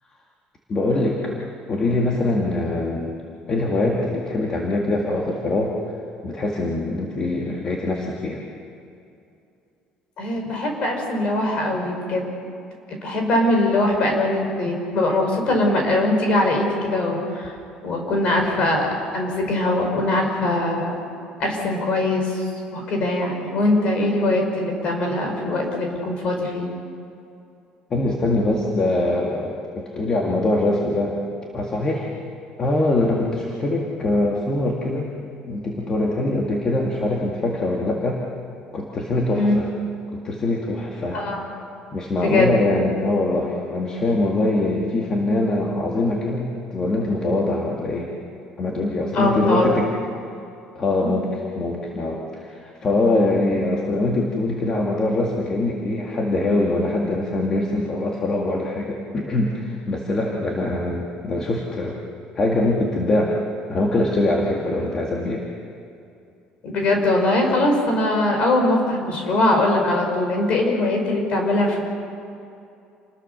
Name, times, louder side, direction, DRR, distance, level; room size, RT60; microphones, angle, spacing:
voice 1, 0.7-1.4 1.7-3.2 3.5-5.7 6.2-8.4 27.9-31.2 31.5-32.1 32.6-35.1 35.4-38.2 38.7-39.7 40.1-41.2 41.9-48.1 48.6-49.9 50.7-62.0 62.4-63.3 63.7-65.4, left 2 dB, 25° left, -1 dB, 2.1 m, -23 dB
voice 2, 10.2-12.3 12.9-17.5 17.8-18.9 19.1-21.0 21.4-22.4 22.7-26.7 39.3-39.6 41.1-41.5 42.2-42.5 49.1-49.8 51.0-51.2 66.6-71.8, left 2 dB, 40° left, 2 dB, 5.2 m, -21 dB
28.5 x 21.0 x 6.8 m, 2.6 s
cardioid pair, 175°, 3 cm